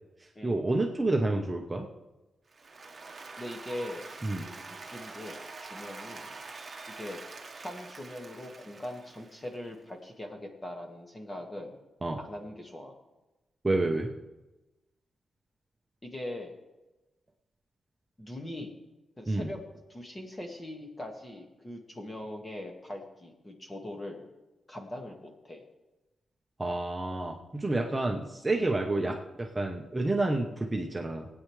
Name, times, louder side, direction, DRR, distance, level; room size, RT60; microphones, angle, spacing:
voice 1, 0.4-1.9 4.2-4.4 12.0-12.2 13.6-14.1 19.3-19.5 26.6-31.3, right 2 dB, 15° right, 1 dB, 0.9 m, -29 dB
Applause, 2.5-9.7, right 3 dB, 30° right, 1.3 m, -45 dB
voice 2, 3.4-4.2 4.4-6.4 6.9-7.2 7.6-11.8 12.2-12.9 16.0-16.6 18.2-18.8 19.2-19.6 19.9-24.3 24.7-25.6 28.5-28.7 29.0-29.2, left 1 dB, 20° left, 2 dB, 1.8 m, -41 dB
20.5 x 8.9 x 3.3 m, 1.1 s
wide cardioid pair, 135°, 0 cm